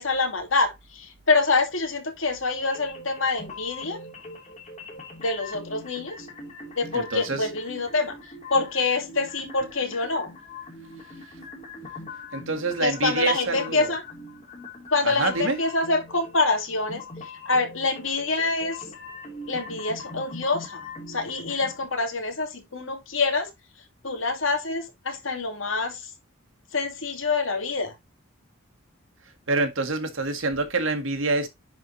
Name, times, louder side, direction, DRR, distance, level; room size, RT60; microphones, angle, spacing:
voice 1, 0.0-4.0 5.2-6.3 6.8-8.2 8.5-10.3 12.8-14.0 14.9-17.0 17.5-18.8 19.5-23.5 24.0-26.1 26.7-27.9, left 3 dB, 75° left, 2.7 m, -26 dB
sound 1, 2.6-21.8, left 3 dB, 35° left, 2.9 m, -42 dB
voice 2, 6.9-7.5 12.3-13.9 15.0-15.6 29.5-31.5, right 3 dB, 75° right, 1.9 m, -26 dB
10.5 x 4.9 x 2.7 m
head